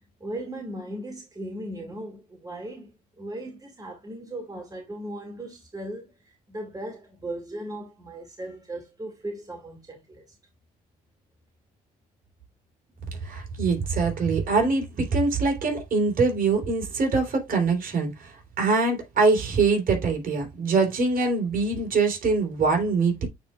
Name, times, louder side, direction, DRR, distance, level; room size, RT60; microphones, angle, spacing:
voice 1, 0.2-10.2, right 1 dB, 20° right, 2.2 m, -37 dB
voice 2, 13.2-23.3, right 4 dB, 50° right, 3.6 m, -23 dB
9.0 x 4.5 x 2.4 m
hypercardioid pair, 60°, 18 cm